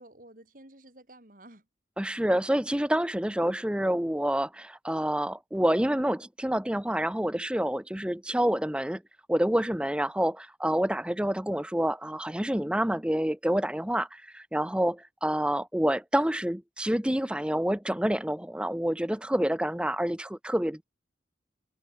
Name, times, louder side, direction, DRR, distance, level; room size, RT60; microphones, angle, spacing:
voice 1, 0.0-1.6, right 1 dB, 45° right, 3.3 m, -52 dB
voice 2, 2.0-9.0 9.3-20.8, right 1 dB, 5° right, 0.7 m, -28 dB
head